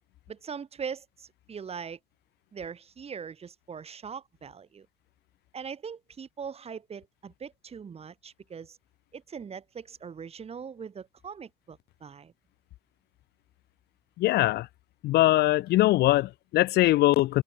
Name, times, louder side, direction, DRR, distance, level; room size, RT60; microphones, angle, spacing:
voice 1, 0.3-2.0 2.5-4.9 5.5-8.8 9.1-12.3, right 6 dB, 35° right, 5.9 m, -41 dB
voice 2, 14.2-14.7 15.0-17.4, left 16 dB, 75° left, 1.1 m, -22 dB
open air
cardioid pair, 110°, 17 cm